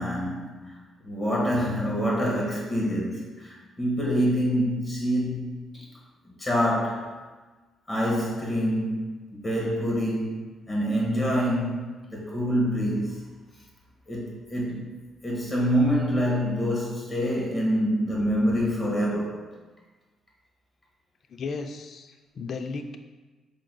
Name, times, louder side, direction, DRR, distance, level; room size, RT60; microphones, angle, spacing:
voice 1, 0.0-5.8 6.4-7.2 7.9-13.2 14.1-14.9 15.2-19.4, equal, 30° left, -4 dB, 1.4 m, -26 dB
voice 2, 21.3-23.0, left 4 dB, 55° left, 7 dB, 0.4 m, -35 dB
5.9 x 3.8 x 2.2 m, 1.3 s
cardioid pair, 90°, 0 cm